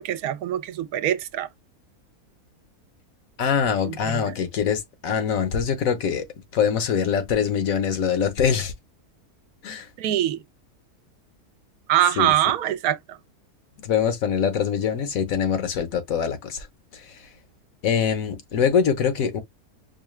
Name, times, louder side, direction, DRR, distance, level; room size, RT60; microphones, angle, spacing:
voice 1, 0.0-1.5 3.8-4.4 10.0-10.4 11.9-13.0, right 12 dB, 75° right, 1.0 m, -23 dB
voice 2, 3.4-6.3 6.5-8.7 9.6-9.9 12.2-12.3 13.8-16.7 16.9-17.3 17.8-19.4, left 7 dB, 65° left, 1.2 m, -23 dB
4.7 x 2.2 x 3.1 m
omnidirectional pair, 1.6 m